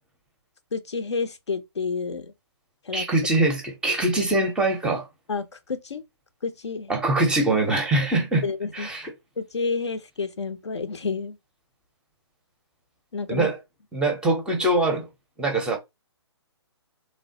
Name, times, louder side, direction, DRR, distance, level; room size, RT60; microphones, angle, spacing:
voice 1, 0.7-2.3 2.8-3.0 5.3-6.0 6.4-6.9 8.4-8.9 9.4-11.4 13.1-13.5, left 4 dB, 75° left, 0.6 m, -29 dB
voice 2, 2.9-5.1 6.9-8.4 8.7-9.1 13.3-13.6 13.9-15.1 15.4-15.8, right 2 dB, 5° right, 0.5 m, -23 dB
3.2 x 2.1 x 2.7 m
figure-of-eight pair, 135°, 15 cm